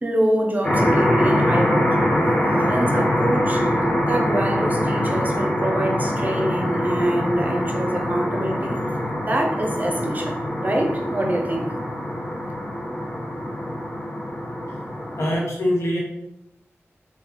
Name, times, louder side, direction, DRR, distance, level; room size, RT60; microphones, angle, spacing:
voice 1, 0.0-3.7 4.1-8.8 9.2-11.8, right 1 dB, 35° right, 2 dB, 0.6 m, -25 dB
sound 1, 0.6-15.3, equal, 25° left, 0.9 m, -23 dB
voice 2, 15.2-16.0, left 1 dB, 75° left, -4 dB, 1.1 m, -23 dB
3.2 x 2.2 x 3.5 m, 0.84 s
wide cardioid pair, 55°, 5 cm